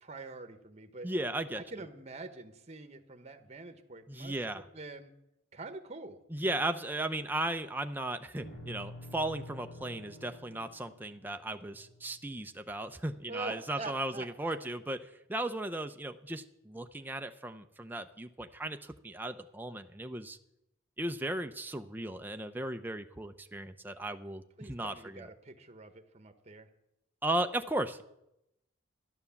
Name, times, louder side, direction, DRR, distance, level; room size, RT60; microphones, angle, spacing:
voice 1, 0.0-1.1 1.5-5.1 5.5-6.2 13.3-14.6 24.6-26.7, right 3 dB, 30° right, 8 dB, 1.0 m, -45 dB
voice 2, 1.0-1.6 4.1-4.6 6.3-15.0 15.3-20.4 21.0-25.3 27.2-28.0, right 1 dB, 10° right, 7 dB, 0.5 m, -36 dB
sound 1, 8.4-12.8, equal, 75° left, 2.7 m, -49 dB
13.0 x 11.0 x 7.0 m, 0.85 s
head